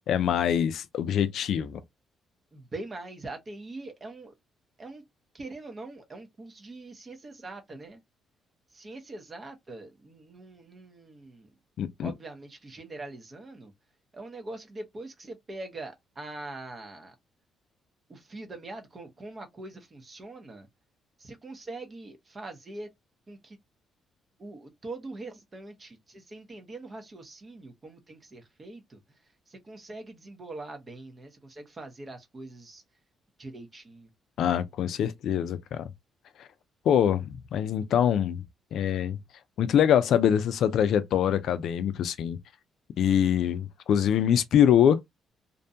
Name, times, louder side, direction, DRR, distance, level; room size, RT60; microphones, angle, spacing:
voice 1, 0.0-1.8 11.8-12.1 34.4-35.9 36.9-38.4 38.7-39.2 39.6-42.4 43.0-45.0, left 9 dB, 75° left, 0.3 m, -24 dB
voice 2, 2.5-4.3 4.8-5.0 5.3-8.0 8.7-11.5 12.0-13.7 14.1-17.1 18.1-20.7 21.2-22.9 23.3-23.6 24.4-29.0 29.5-32.8 33.4-34.1, right 2 dB, 35° right, 0.8 m, -43 dB
2.6 x 2.2 x 2.5 m
cardioid pair, 90°, 0 cm